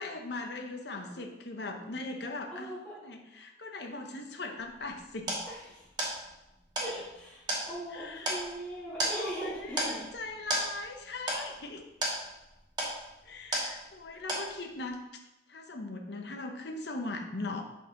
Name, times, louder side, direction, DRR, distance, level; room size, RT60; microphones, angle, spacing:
voice 1, 0.0-2.7 3.0-5.4 7.9-8.4 9.2-11.9 13.2-15.0 15.5-17.6, left 3 dB, 60° left, 3 dB, 0.8 m, -39 dB
voice 2, 1.0-1.4 2.5-3.0 5.5-5.8 6.8-10.1, right 1 dB, 5° left, -8 dB, 1.8 m, -40 dB
sound 1, 4.6-14.0 14.3-14.9, right 1 dB, 20° right, 1.7 m, -35 dB
8.4 x 5.4 x 3.8 m, 0.97 s
head